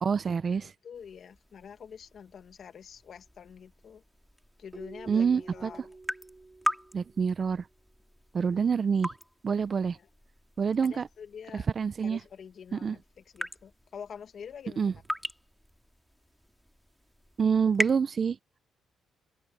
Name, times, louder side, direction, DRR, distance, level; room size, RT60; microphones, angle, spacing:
voice 1, 0.0-0.7 5.1-5.7 6.9-7.6 8.3-9.1 9.4-10.0 10.6-11.1 11.5-12.2 12.8-13.0 14.8-14.9 17.4-18.4, right 6 dB, 45° right, 0.9 m, -27 dB
voice 2, 0.5-4.0 4.6-6.0 8.5-8.8 9.9-10.1 10.8-11.7 12.0-15.0, left 7 dB, 55° left, 2.3 m, -47 dB
sound 1, 0.9-18.0, equal, ahead, 4.5 m, -41 dB
Keyboard (musical), 4.7-7.6, right 3 dB, 20° right, 3.0 m, -49 dB
open air
cardioid pair, 90°, 0 cm